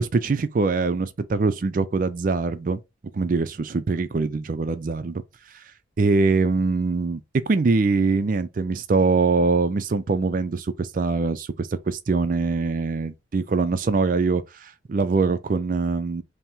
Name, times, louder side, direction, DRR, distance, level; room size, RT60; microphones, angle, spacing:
voice 1, 0.0-2.8 3.1-5.2 6.0-7.2 7.5-16.2, right 4 dB, 45° right, 0.4 m, -23 dB
5.5 x 2.1 x 3.0 m
head